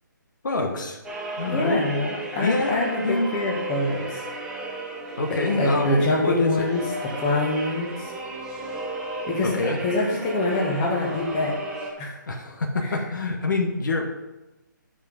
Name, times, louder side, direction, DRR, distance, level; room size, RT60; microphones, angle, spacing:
voice 1, 0.4-1.0 1.4-1.8 2.4-3.3 5.2-6.7 9.4-9.8 12.3-14.2, left 3 dB, 65° left, 3 dB, 1.4 m, -26 dB
sound 1, 1.0-11.9, right 2 dB, 5° right, 0.9 m, -34 dB
voice 2, 1.5-4.2 5.5-8.1 9.3-11.6 12.0-12.2 12.8-12.9, left 2 dB, 20° left, -2 dB, 1.5 m, -25 dB
9.8 x 5.2 x 5.2 m, 1.0 s
hypercardioid pair, 155°, 11 cm